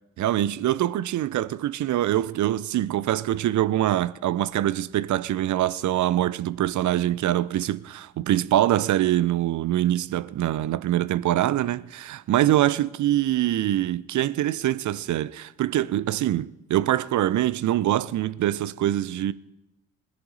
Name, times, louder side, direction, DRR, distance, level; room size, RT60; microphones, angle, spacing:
voice 1, 0.2-19.3, right 13 dB, 45° right, 0.6 m, -24 dB
20.0 x 10.5 x 4.0 m
hypercardioid pair, 50°, 43 cm